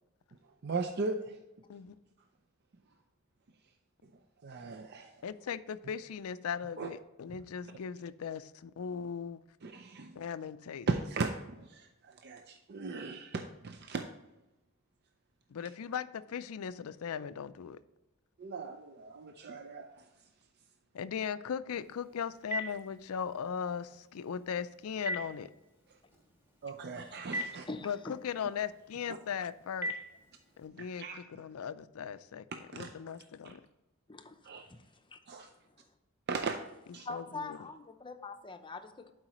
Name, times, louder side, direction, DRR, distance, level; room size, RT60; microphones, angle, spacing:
voice 1, 0.6-1.4 4.4-5.1 6.8-6.9 9.6-10.2 10.9-14.0 18.4-19.9 26.6-27.7 31.0-31.2 32.7-32.9 33.4-33.5 34.4-34.7 35.3-35.5 36.3-36.6 36.9-37.1, right 4 dB, 50° right, 5 dB, 0.5 m, -37 dB
voice 2, 5.2-9.4 10.2-10.9 15.5-17.8 20.9-25.5 27.8-29.9 30.6-32.5 32.7-33.6 37.1-37.6, left 7 dB, 80° left, 14 dB, 0.4 m, -38 dB
Telephone, 21.8-30.7, equal, 10° right, 1.4 m, -44 dB
voice 3, 27.0-27.3 27.7-28.1 34.1-34.8 35.1-35.2 37.0-39.1, left 3 dB, 25° left, 7 dB, 0.6 m, -44 dB
11.5 x 4.8 x 3.0 m, 1.0 s
head